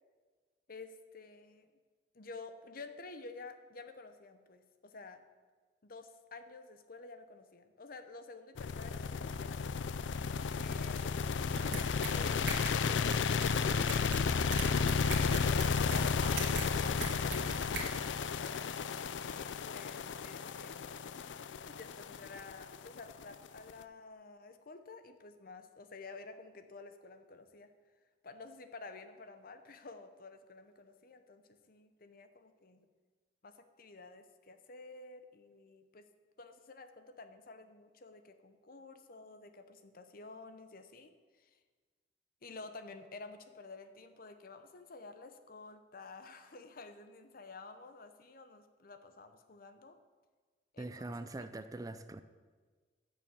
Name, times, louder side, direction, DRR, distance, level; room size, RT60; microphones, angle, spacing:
voice 1, 0.7-1.7 2.1-5.2 5.8-9.8 10.6-17.7 18.0-18.9 19.3-20.9 21.6-27.7 28.2-32.9 33.4-36.1 36.4-41.6 42.4-50.0 50.7-51.3, left 3 dB, 55° left, 9 dB, 0.8 m, -51 dB
sound 1, 8.6-23.7, left 5 dB, 90° left, 0.4 m, -33 dB
sound 2, 11.5-17.9, right 3 dB, 80° right, 2.0 m, -42 dB
voice 2, 50.8-52.2, right 2 dB, 20° right, 11 dB, 0.4 m, -43 dB
8.6 x 6.9 x 7.0 m, 1.4 s
head